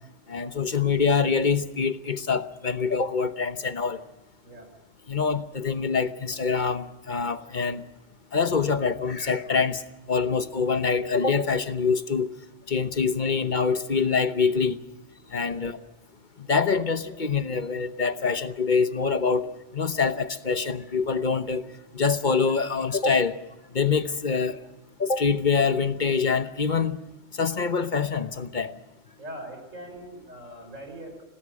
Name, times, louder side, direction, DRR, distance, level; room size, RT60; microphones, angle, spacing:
voice 1, 0.3-4.0 5.1-7.8 8.3-9.8 10.1-12.3 12.7-14.8 15.3-15.8 16.5-19.4 19.7-21.6 21.9-23.4 23.7-24.6 25.0-27.0 27.4-28.7, left 5 dB, 40° left, 10 dB, 1.1 m, -25 dB
voice 2, 4.4-4.7 15.5-15.8 29.2-31.2, right 1 dB, 85° right, 5 dB, 5.4 m, -42 dB
26.5 x 18.5 x 6.4 m, 0.97 s
omnidirectional pair, 1.3 m